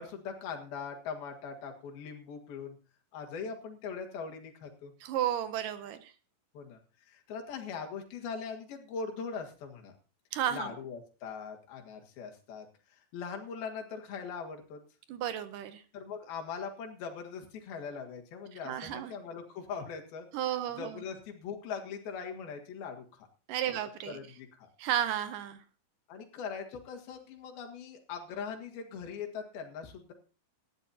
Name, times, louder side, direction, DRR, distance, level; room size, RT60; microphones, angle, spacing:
voice 1, 0.0-2.8 3.1-4.9 6.5-6.8 7.1-9.9 10.5-12.7 12.9-14.8 15.9-20.3 20.8-23.3 23.7-23.8 24.1-24.7 26.1-30.1, left 6 dB, 85° left, 3 dB, 3.7 m, -41 dB
voice 2, 5.0-6.1 10.3-10.7 15.1-15.8 18.7-19.1 20.3-21.0 23.5-24.2 24.8-25.6, right 10 dB, 75° right, 11 dB, 2.3 m, -33 dB
19.0 x 13.0 x 2.8 m, 0.33 s
omnidirectional pair, 4.2 m